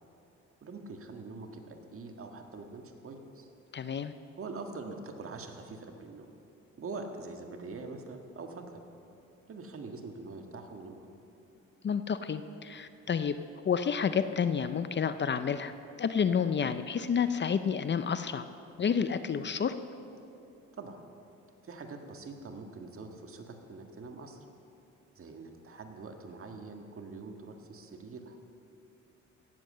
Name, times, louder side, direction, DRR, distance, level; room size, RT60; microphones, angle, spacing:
voice 1, 0.6-3.5 4.3-6.3 6.8-8.8 9.5-10.9 20.8-21.0 21.6-24.4 25.1-28.4, right 3 dB, 45° right, 4 dB, 1.7 m, -44 dB
voice 2, 3.7-4.1 11.8-13.4 13.6-18.5 18.8-19.7, left 7 dB, 35° left, 11 dB, 0.6 m, -30 dB
17.0 x 7.6 x 7.6 m, 2.8 s
cardioid pair, 90°, 30 cm